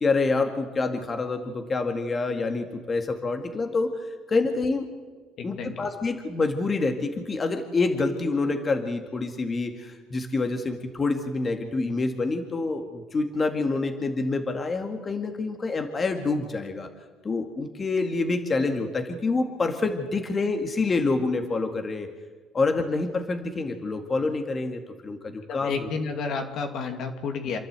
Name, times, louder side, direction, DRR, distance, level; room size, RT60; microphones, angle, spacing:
voice 1, 0.0-4.9 5.4-16.9 17.2-22.1 22.5-25.9, left 3 dB, 30° left, 4 dB, 2.1 m, -27 dB
voice 2, 5.4-5.9 25.5-27.6, left 5 dB, 60° left, 4 dB, 2.5 m, -31 dB
28.0 x 11.5 x 8.2 m, 1.4 s
cardioid pair, 95°, 0 cm